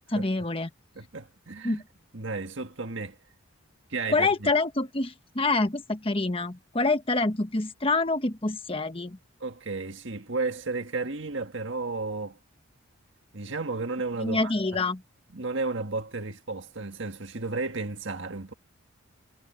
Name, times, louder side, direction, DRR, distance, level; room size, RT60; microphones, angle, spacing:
voice 1, 0.1-0.7 1.6-1.8 4.1-9.2 14.2-15.0, left 3 dB, 25° left, 1.3 m, -26 dB
voice 2, 1.0-1.8 2.1-3.2 3.9-4.5 9.4-12.4 13.3-14.8 15.3-18.5, right 3 dB, 60° right, 1.8 m, -33 dB
head